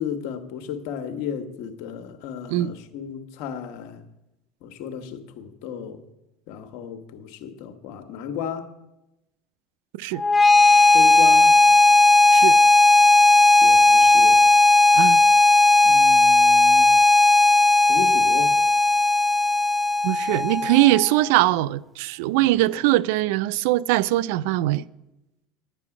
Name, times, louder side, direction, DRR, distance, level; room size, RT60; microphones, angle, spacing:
voice 1, 0.0-4.0 4.6-6.0 6.5-8.7 10.9-11.5 13.6-14.4 15.8-16.9 17.9-18.5 22.3-22.5, left 8 dB, 70° left, 1.2 m, -34 dB
sound 1, 10.2-21.2, left 2 dB, 15° left, 0.3 m, -16 dB
voice 2, 20.0-24.8, right 16 dB, 75° right, 0.3 m, -21 dB
10.5 x 9.0 x 5.9 m
supercardioid pair, 110°, 0 cm